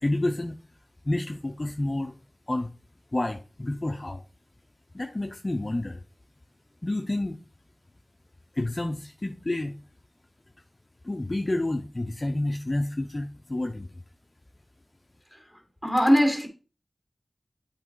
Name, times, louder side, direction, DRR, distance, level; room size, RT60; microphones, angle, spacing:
voice 1, 0.0-0.6 1.0-2.1 2.5-2.7 3.1-4.2 4.9-6.0 6.8-7.4 8.5-9.7 11.0-13.9, left 1 dB, 35° left, 0.6 m, -29 dB
voice 2, 15.8-16.5, equal, 5° right, 2.1 m, -21 dB
8.2 x 3.4 x 4.6 m
wide cardioid pair, 55°, 0 cm